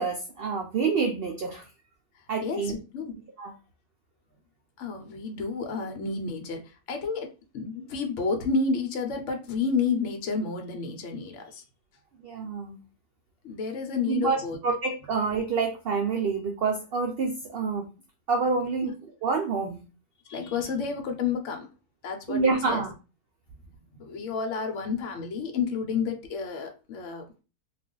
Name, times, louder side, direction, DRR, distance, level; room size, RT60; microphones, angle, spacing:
voice 1, 0.0-1.7 2.3-2.8 3.4-3.5 12.2-12.8 14.1-17.9 18.3-18.9 19.2-19.8 22.3-22.9, right 4 dB, 85° right, 3 dB, 0.5 m, -27 dB
voice 2, 2.4-3.1 4.8-6.6 6.9-11.6 13.4-14.6 18.8-18.9 20.3-21.7 22.0-22.8 24.0-27.4, left 5 dB, 60° left, 4 dB, 1.0 m, -30 dB
2.4 x 2.4 x 3.7 m, 0.33 s
omnidirectional pair, 1.5 m